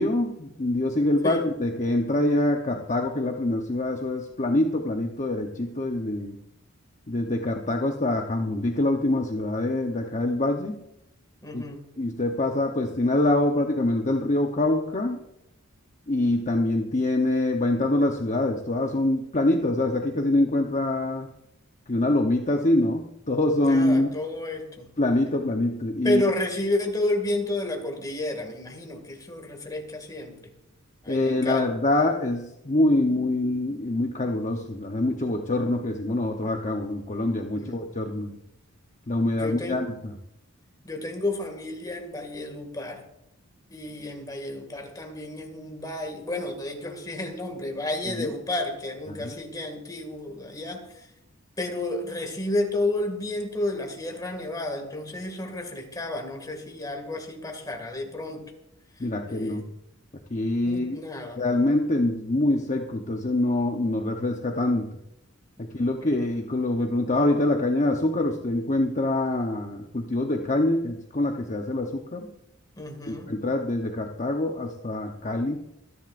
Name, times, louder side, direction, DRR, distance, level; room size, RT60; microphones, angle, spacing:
voice 1, 0.0-6.4 7.1-10.8 11.5-11.6 12.0-15.2 16.1-21.3 21.9-24.1 25.0-26.2 31.1-38.4 39.1-40.1 48.1-48.3 49.2-49.3 59.0-59.7 60.3-61.0 61.4-64.9 65.6-72.3 73.1-75.6, left 1 dB, 35° left, 3 dB, 0.9 m, -25 dB
voice 2, 11.4-11.8 23.6-24.9 26.0-30.5 31.0-31.7 37.5-38.0 39.3-39.8 40.8-43.0 43.7-51.1 51.6-58.5 59.0-59.7 60.7-61.4 65.6-65.7 66.0-66.1 72.8-73.3, left 2 dB, 15° left, 3 dB, 2.3 m, -31 dB
26.0 x 11.0 x 2.6 m, 0.83 s
head